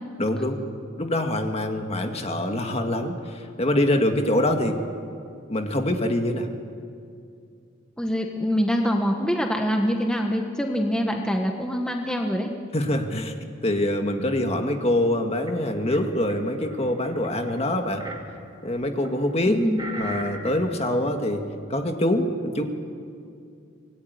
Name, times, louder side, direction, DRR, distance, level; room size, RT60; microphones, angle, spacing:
voice 1, 0.2-0.6 1.0-4.8 5.5-6.5 12.7-13.3 13.6-18.0 18.6-19.6 19.9-21.4 21.7-22.6, left 1 dB, 30° left, 5 dB, 1.9 m, -24 dB
voice 2, 8.0-12.5 19.5-19.8, equal, 5° left, 2 dB, 1.4 m, -24 dB
sound 1, 15.4-16.0 16.3-20.7 21.1-21.2, right 2 dB, 20° right, 2.6 m, -40 dB
25.5 x 19.5 x 9.5 m, 2.4 s
head